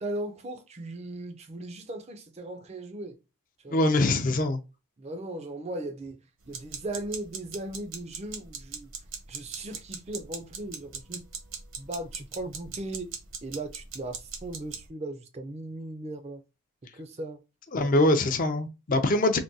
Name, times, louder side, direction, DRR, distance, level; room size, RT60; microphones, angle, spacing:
voice 1, 0.0-3.2 3.6-3.8 5.0-6.2 6.5-8.9 9.3-11.3 11.8-13.1 13.4-16.4 16.9-17.4 17.8-17.9, right 1 dB, 30° right, 0.4 m, -37 dB
voice 2, 3.7-4.6 17.7-19.4, left 2 dB, 35° left, 0.4 m, -23 dB
sound 1, 6.5-14.9, right 6 dB, 60° right, 0.8 m, -40 dB
3.5 x 2.2 x 2.6 m
head